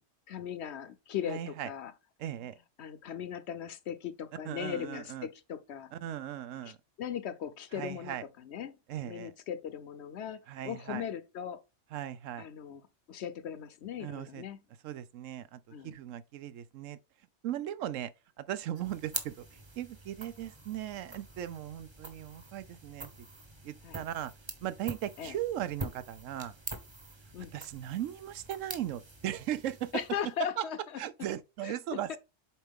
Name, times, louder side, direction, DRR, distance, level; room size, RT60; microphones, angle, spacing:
voice 1, 0.3-1.9 2.8-5.9 6.7-6.8 7.0-8.7 9.0-11.6 12.4-12.8 13.1-14.6 15.7-15.9 23.8-24.0 25.2-25.4 27.3-27.5 29.9-30.8 31.6-31.7 32.1-32.2, left 9 dB, 65° left, 0.9 m, -38 dB
voice 2, 1.3-1.7 2.2-2.5 4.4-5.3 5.9-6.8 7.7-8.2 8.9-9.3 10.5-11.0 11.9-12.5 14.0-14.4 14.8-17.0 17.4-18.1 18.4-23.3 23.6-24.3 24.6-26.6 27.5-30.0 30.6-30.7 31.0-32.2, right 11 dB, 90° right, 1.0 m, -38 dB
sound 1, 18.7-30.4, right 2 dB, 25° right, 1.0 m, -45 dB
7.4 x 4.5 x 3.5 m
omnidirectional pair, 1.3 m